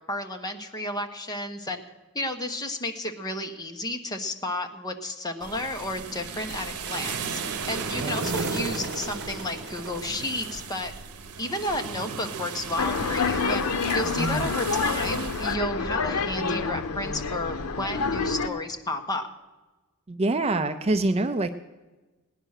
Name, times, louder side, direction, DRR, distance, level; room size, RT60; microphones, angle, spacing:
voice 1, 0.1-1.8 2.1-7.4 7.7-10.9 11.4-13.7 13.9-19.3, left 1 dB, 20° left, 4 dB, 1.1 m, -32 dB
sound 1, 5.4-15.6, right 6 dB, 80° right, 0.9 m, -37 dB
sound 2, 6.7-10.9, right 3 dB, 50° right, 1.2 m, -34 dB
sound 3, 12.8-18.5, left 4 dB, 80° left, 0.8 m, -27 dB
voice 2, 14.2-14.5 20.1-21.5, right 2 dB, 30° right, 9 dB, 0.5 m, -25 dB
18.0 x 10.0 x 6.5 m, 1.2 s
head